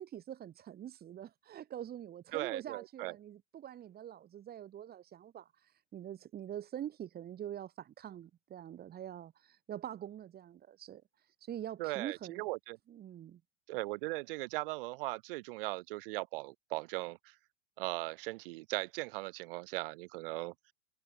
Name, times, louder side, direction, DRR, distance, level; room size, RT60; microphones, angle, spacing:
voice 1, 0.0-12.5 12.9-13.4, right 10 dB, 30° right, 3.9 m, -45 dB
voice 2, 2.3-3.1 11.8-12.8 13.7-17.3 17.8-20.5, right 22 dB, 55° right, 3.3 m, -38 dB
hypercardioid pair, 105°, 32 cm